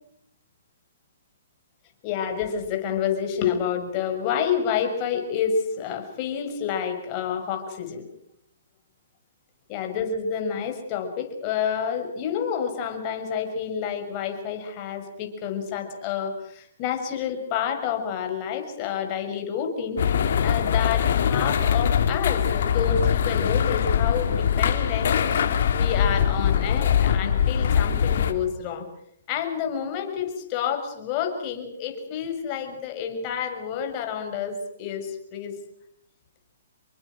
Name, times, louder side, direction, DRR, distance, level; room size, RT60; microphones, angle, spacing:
voice 1, 2.0-8.1 9.7-20.0 20.4-25.2 25.7-28.9 29.3-35.6, left 7 dB, 35° left, 5 dB, 6.5 m, -29 dB
sound 1, 20.0-28.3, left 8 dB, 60° left, 3.2 m, -22 dB
28.5 x 23.5 x 6.3 m, 0.72 s
hypercardioid pair, 140°, 0 cm